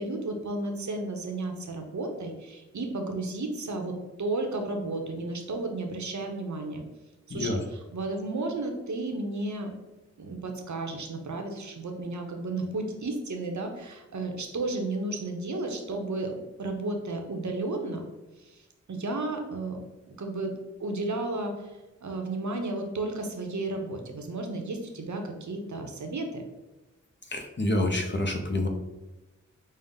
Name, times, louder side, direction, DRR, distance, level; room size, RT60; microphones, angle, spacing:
voice 1, 0.0-6.8 7.3-7.6 7.9-9.7 10.2-18.0 18.4-18.5 18.9-19.8 20.2-20.5 20.8-21.5 22.0-26.4, right 2 dB, 75° right, 3 dB, 0.7 m, -33 dB
voice 2, 27.3-28.7, left 1 dB, 40° left, 4 dB, 0.6 m, -27 dB
5.3 x 2.0 x 3.6 m, 1.1 s
wide cardioid pair, 50°, 30 cm